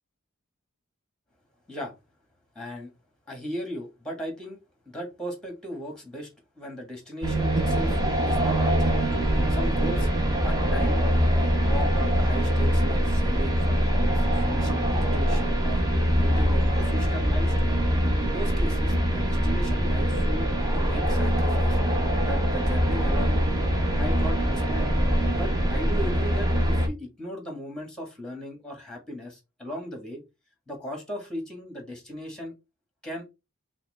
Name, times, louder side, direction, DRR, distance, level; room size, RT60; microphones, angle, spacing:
voice 1, 2.5-2.9 3.3-4.6 4.8-6.3 6.6-10.1 10.4-11.0 11.6-15.8 16.2-17.7 18.2-20.5 20.7-21.8 22.2-23.4 23.9-24.9 25.3-30.2 30.7-32.5 33.0-33.2, equal, 5° left, 3 dB, 1.6 m, -37 dB
sound 1, 7.2-26.9, equal, 20° right, 1.0 m, -23 dB
5.7 x 2.1 x 4.1 m, 0.25 s
head